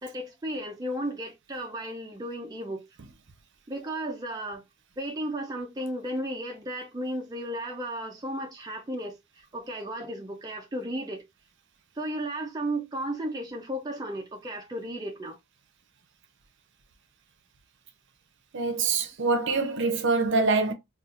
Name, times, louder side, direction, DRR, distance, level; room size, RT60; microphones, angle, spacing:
voice 1, 0.0-2.9 3.7-4.6 5.0-11.2 11.9-15.4, right 1 dB, 15° right, 0.4 m, -34 dB
voice 2, 18.5-20.7, right 4 dB, 55° right, 0.6 m, -25 dB
4.1 x 2.4 x 2.4 m
head